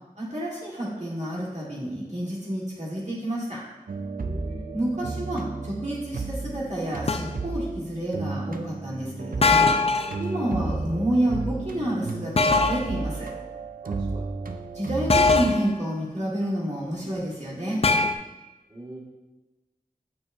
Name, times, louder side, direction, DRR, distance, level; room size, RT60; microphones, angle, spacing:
voice 1, 0.1-3.6 4.7-9.7 10.2-13.3 14.7-17.8, right 1 dB, 50° right, -6 dB, 1.7 m, -29 dB
sound 1, 3.9-15.6, right 3 dB, 70° right, 0.5 m, -33 dB
voice 2, 4.2-4.7 13.8-14.2 18.7-19.0, right 1 dB, 25° right, -6 dB, 1.7 m, -42 dB
sound 2, 7.1-7.4 9.4-10.2 12.4-12.9 15.1-15.7 17.8-18.1, left 4 dB, 40° left, 0.3 m, -21 dB
8.6 x 4.5 x 2.6 m, 1.1 s
wide cardioid pair, 45°, 15 cm